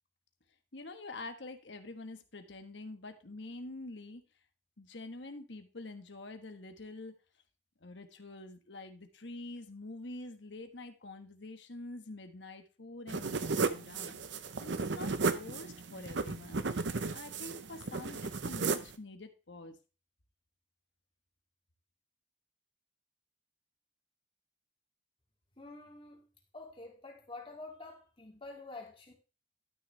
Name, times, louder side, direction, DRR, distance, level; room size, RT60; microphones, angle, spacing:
voice 1, 0.7-4.2 4.8-7.2 7.8-14.2 14.6-16.6 17.1-19.8, left 2 dB, 70° left, 1.4 m, -46 dB
sound 1, 13.1-19.0, right 4 dB, 70° right, 0.7 m, -34 dB
voice 2, 25.6-26.3 26.5-29.1, left 2 dB, 30° left, 2.5 m, -48 dB
12.5 x 6.3 x 3.3 m
head